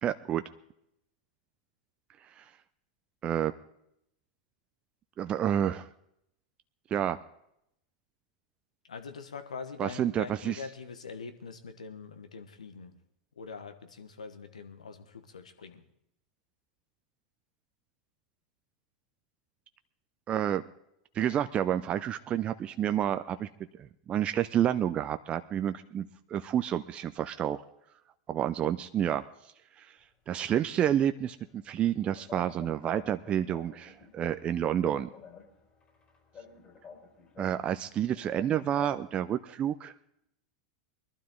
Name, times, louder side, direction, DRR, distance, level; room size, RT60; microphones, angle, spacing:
voice 1, 0.0-0.4 2.4-2.5 3.2-3.5 5.2-5.9 6.9-7.2 9.8-10.6 20.3-20.6 21.1-23.5 23.8-27.6 28.3-29.2 29.8-29.9 30.3-35.1 37.4-39.9, right 10 dB, 30° right, 10 dB, 0.6 m, -29 dB
voice 2, 8.8-13.0 13.3-15.8, left 5 dB, 90° left, 9 dB, 1.3 m, -43 dB
sound 1, 31.4-39.1, left 6 dB, 35° left, 4.7 m, -51 dB
21.5 x 12.0 x 3.9 m, 0.77 s
hypercardioid pair, 100°, 4 cm